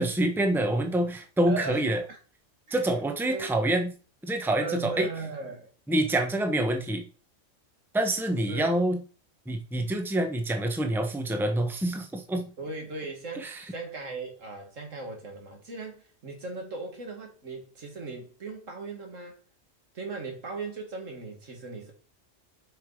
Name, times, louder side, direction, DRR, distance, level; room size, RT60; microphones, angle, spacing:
voice 1, 0.0-2.0 2.7-3.9 4.2-5.1 5.9-7.1 7.9-9.0 9.5-12.5 13.4-13.5, right 1 dB, ahead, 1.0 m, -26 dB
voice 2, 1.5-2.2 2.7-2.9 3.3-3.5 4.6-5.7 8.5-8.7 12.6-19.4 19.9-21.9, right 3 dB, 85° right, 2.6 m, -38 dB
7.5 x 5.4 x 5.0 m
omnidirectional pair, 1.3 m